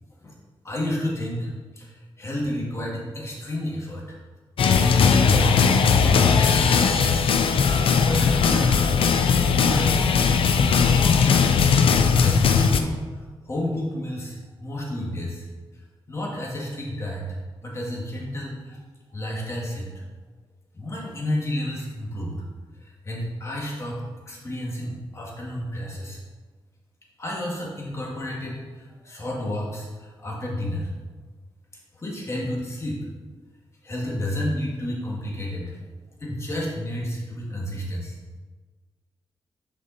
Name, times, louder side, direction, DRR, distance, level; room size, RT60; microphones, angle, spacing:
voice 1, 0.6-4.2 4.9-7.3 7.6-8.8 9.2-11.1 12.2-15.5 16.1-17.4 17.6-18.8 19.1-19.9 20.7-22.4 22.8-26.2 27.2-30.9 31.9-33.0 33.8-35.8 36.2-38.2, left 1 dB, 30° left, -4 dB, 2.0 m, -31 dB
sound 1, 4.6-12.8, left 6 dB, 75° left, 0.6 m, -19 dB
6.8 x 5.4 x 4.2 m, 1.4 s
wide cardioid pair, 115°, 9 cm